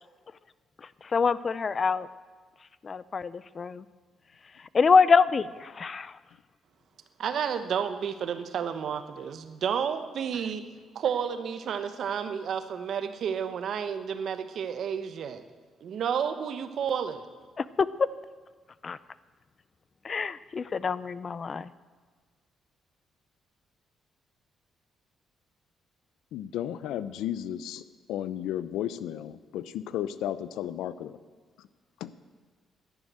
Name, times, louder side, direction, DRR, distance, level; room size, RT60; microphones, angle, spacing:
voice 1, 1.1-2.1 2.8-3.8 4.7-6.1 17.6-17.9 18.8-19.0 20.0-21.7, left 5 dB, 40° left, 17 dB, 0.5 m, -25 dB
voice 2, 7.2-10.6 10.9-15.4 15.8-17.2, right 7 dB, 65° right, 10 dB, 1.1 m, -31 dB
voice 3, 26.3-27.8 28.1-31.2 32.0-32.1, left 11 dB, 90° left, 15 dB, 0.6 m, -33 dB
11.0 x 10.5 x 9.0 m, 1.5 s
cardioid pair, 90°, 0 cm